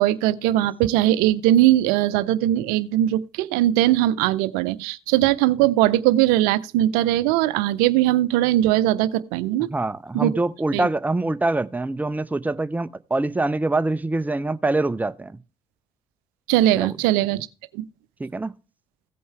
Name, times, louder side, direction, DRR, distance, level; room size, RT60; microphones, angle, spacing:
voice 1, 0.0-9.7 10.1-10.3 10.7-10.9 16.5-17.5 17.7-17.8, right 14 dB, 80° right, 0.5 m, -20 dB
voice 2, 9.7-15.4 16.8-16.9 18.2-18.5, right 2 dB, 10° right, 0.6 m, -24 dB
16.0 x 5.4 x 4.6 m
hypercardioid pair, 60°, 15 cm